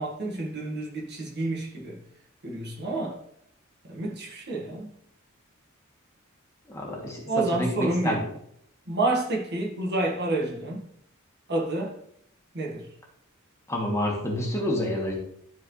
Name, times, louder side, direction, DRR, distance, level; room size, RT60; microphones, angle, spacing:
voice 1, 0.0-2.0 2.4-3.2 3.9-4.9 7.3-8.2 8.9-10.8 11.5-11.9 12.5-12.8, right 2 dB, 55° right, 1.7 m, -29 dB
voice 2, 6.7-8.2 13.7-15.2, left 1 dB, 15° left, 1.7 m, -28 dB
12.0 x 4.6 x 3.2 m
head